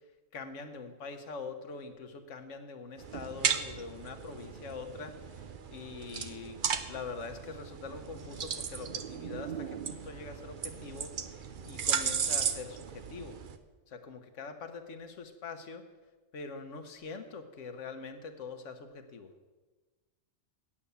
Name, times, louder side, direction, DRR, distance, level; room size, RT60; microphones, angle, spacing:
voice 1, 0.3-6.6 6.9-11.1 11.6-13.4 13.9-15.9 16.3-19.3, left 4 dB, 65° left, 7 dB, 1.3 m, -43 dB
sound 1, 3.0-13.6, right 7 dB, 55° right, 0.6 m, -36 dB
8.6 x 8.5 x 6.8 m, 1.3 s
omnidirectional pair, 1.4 m